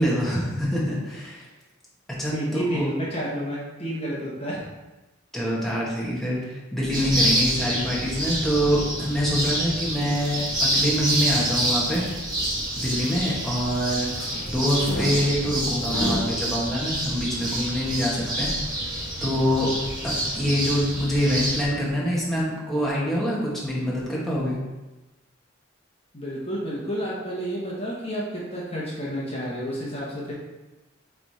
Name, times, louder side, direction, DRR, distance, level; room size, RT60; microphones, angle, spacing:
voice 1, 0.0-1.5 2.2-2.9 5.3-12.0 12.8-14.1 14.5-18.5 19.2-19.7 20.0-24.6, equal, ahead, -7 dB, 1.7 m, -25 dB
voice 2, 2.3-4.6 26.1-30.3, equal, 30° left, -5 dB, 1.4 m, -30 dB
sound 1, 6.9-21.6, right 1 dB, 20° right, 2.1 m, -27 dB
sound 2, 9.8-16.4, equal, 80° left, 1.3 m, -35 dB
8.6 x 3.5 x 4.3 m, 1.1 s
head